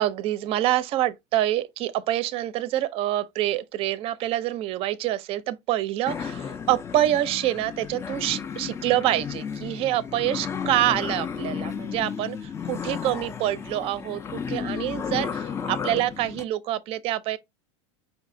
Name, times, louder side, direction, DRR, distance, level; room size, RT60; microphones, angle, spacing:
voice 1, 0.0-17.4, right 14 dB, 40° right, 0.5 m, -26 dB
sound 1, 6.1-16.4, left 7 dB, 15° left, 0.4 m, -33 dB
5.4 x 2.4 x 3.7 m
supercardioid pair, 140°, 16 cm